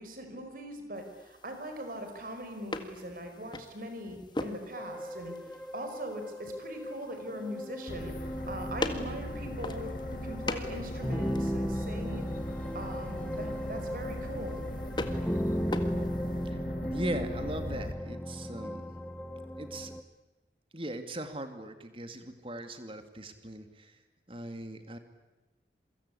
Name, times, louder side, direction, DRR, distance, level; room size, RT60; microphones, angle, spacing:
voice 1, 0.0-5.3 5.7-8.1 8.5-9.8 10.2-12.3 12.7-14.6, equal, 50° right, 6 dB, 5.2 m, -41 dB
sound 1, 0.9-16.5, left 2 dB, 25° left, 1.8 m, -43 dB
sound 2, 4.8-20.0, equal, 5° left, 1.1 m, -37 dB
sound 3, 7.9-17.9, left 1 dB, 50° left, 1.6 m, -39 dB
voice 2, 16.9-18.9 19.6-19.9 20.7-23.9 24.3-25.0, right 1 dB, 30° right, 8 dB, 2.5 m, -39 dB
28.0 x 24.0 x 8.5 m, 1.1 s
head